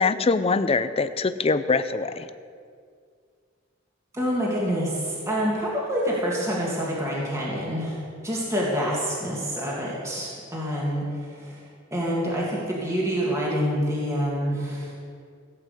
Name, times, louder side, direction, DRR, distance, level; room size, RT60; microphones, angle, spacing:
voice 1, 0.0-2.3, left 4 dB, 30° left, 12 dB, 0.5 m, -23 dB
voice 2, 4.1-8.0 8.2-11.6 11.9-14.9, equal, 15° right, -5 dB, 2.2 m, -27 dB
16.0 x 5.8 x 8.2 m, 2.2 s
head